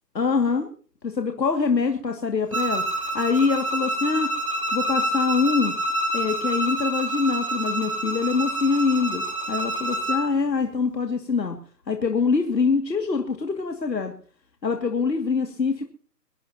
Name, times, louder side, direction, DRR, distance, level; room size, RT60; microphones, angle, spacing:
voice 1, 0.1-0.7 1.0-4.3 4.7-5.7 6.1-11.6 11.9-14.1 14.6-15.8, left 5 dB, 90° left, 4 dB, 2.5 m, -24 dB
Bowed string instrument, 2.5-10.3, right 1 dB, 20° right, 1.4 m, -27 dB
23.0 x 16.0 x 2.9 m, 0.44 s
hypercardioid pair, 175°, 49 cm